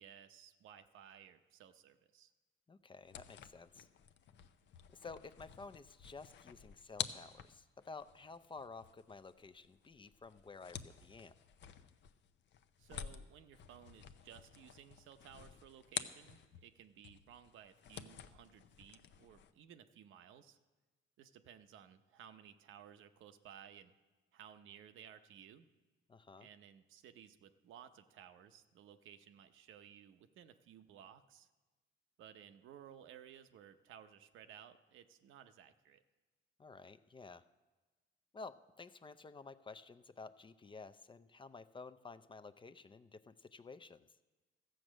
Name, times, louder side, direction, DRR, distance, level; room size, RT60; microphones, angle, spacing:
voice 1, 0.0-2.3 12.8-20.6 21.2-23.9 24.3-25.6 26.4-31.5 32.2-36.0, right 9 dB, 80° right, 9 dB, 0.8 m, -58 dB
voice 2, 2.7-3.9 4.9-11.3 26.1-26.5 36.6-37.4 38.3-44.1, left 4 dB, 25° left, 13 dB, 0.5 m, -52 dB
sound 1, 3.0-16.7 17.0-19.5, left 9 dB, 65° left, 0.7 m, -50 dB
14.0 x 7.8 x 6.3 m, 1.2 s
cardioid pair, 90°, 20 cm